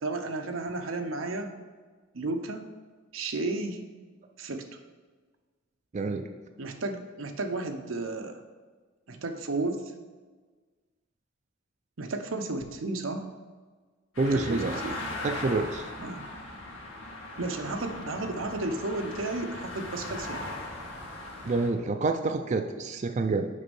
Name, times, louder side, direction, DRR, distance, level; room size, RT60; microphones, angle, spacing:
voice 1, 0.0-1.5 2.1-2.6 3.1-3.8 4.4-4.7 6.6-8.4 9.1-9.8 12.0-13.3 14.3-15.0 16.0-16.3 17.4-20.4, right 2 dB, 85° right, 5 dB, 0.8 m, -33 dB
voice 2, 5.9-6.3 14.2-14.8 15.2-15.9 21.4-23.5, right 3 dB, 35° right, 6 dB, 0.4 m, -27 dB
sound 1, 14.1-21.7, left 2 dB, 85° left, 1.8 m, -39 dB
6.6 x 5.2 x 5.3 m, 1.4 s
head